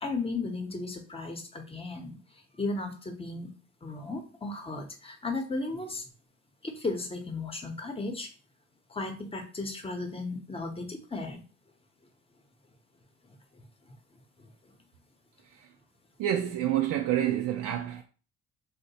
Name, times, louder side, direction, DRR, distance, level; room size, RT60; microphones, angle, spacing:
voice 1, 0.0-2.2 2.6-3.5 3.8-6.1 6.6-8.3 8.9-11.4 13.3-13.4 14.4-14.5, left 3 dB, 20° left, 0.8 m, -35 dB
voice 2, 16.2-18.0, right 11 dB, 85° right, 0.5 m, -28 dB
2.8 x 2.2 x 4.0 m
cardioid pair, 90°, 30 cm